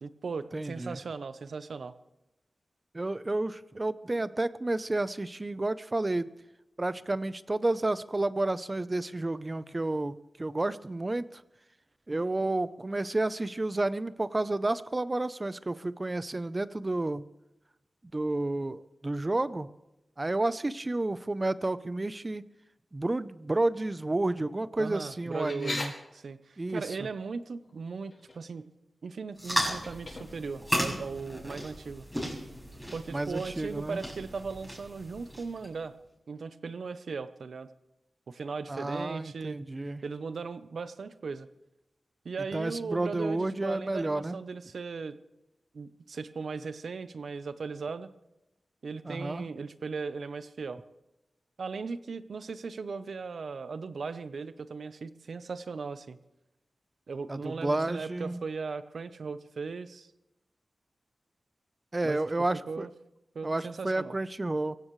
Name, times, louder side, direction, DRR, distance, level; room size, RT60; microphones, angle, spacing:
voice 1, 0.0-1.9 24.8-25.9 26.1-28.7 29.0-32.0 32.9-35.9 36.3-37.7 38.3-39.6 40.0-41.5 42.2-45.2 45.7-48.1 48.8-50.8 51.6-56.2 57.1-60.1 62.0-62.2 62.7-62.9 63.3-64.2, right 4 dB, 80° right, 12 dB, 0.8 m, -38 dB
voice 2, 0.5-1.0 2.9-6.3 6.8-11.4 12.1-17.2 18.1-19.7 20.2-22.4 22.9-25.9 26.6-27.1 33.1-34.0 38.7-40.0 42.5-44.4 49.0-49.4 57.3-58.4 61.9-62.9 63.4-64.8, right 2 dB, 30° right, 15 dB, 0.7 m, -31 dB
sound 1, 25.3-25.9 27.6-27.8 28.1-28.6 29.6-30.6, left 2 dB, 50° left, 4.4 m, -38 dB
sound 2, 29.4-35.7, equal, 5° right, 6.6 m, -35 dB
23.5 x 16.5 x 3.2 m, 0.92 s
wide cardioid pair, 70°, 0 cm